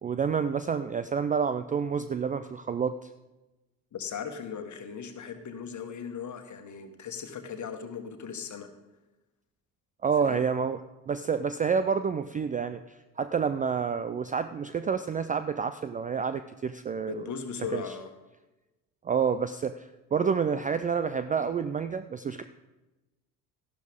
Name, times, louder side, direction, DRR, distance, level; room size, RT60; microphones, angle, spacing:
voice 1, 0.0-3.0 10.0-10.8 11.1-17.1 17.7-17.8 19.0-22.4, right 6 dB, 20° right, 11 dB, 0.3 m, -28 dB
voice 2, 3.9-8.7 10.2-10.4 17.1-18.1, left 6 dB, 40° left, 7 dB, 1.6 m, -38 dB
14.0 x 11.5 x 3.6 m, 1.0 s
hypercardioid pair, 60°, 46 cm